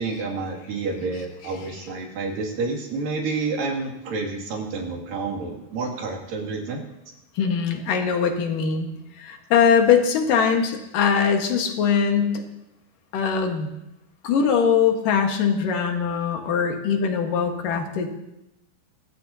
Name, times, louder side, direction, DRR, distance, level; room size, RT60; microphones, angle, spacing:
voice 1, 0.0-6.8, right 3 dB, 85° right, 0 dB, 4.2 m, -29 dB
voice 2, 7.4-8.9 9.2-12.4 13.1-13.7 14.2-18.1, left 6 dB, 80° left, 3 dB, 3.2 m, -21 dB
22.5 x 15.0 x 2.9 m, 0.88 s
omnidirectional pair, 3.8 m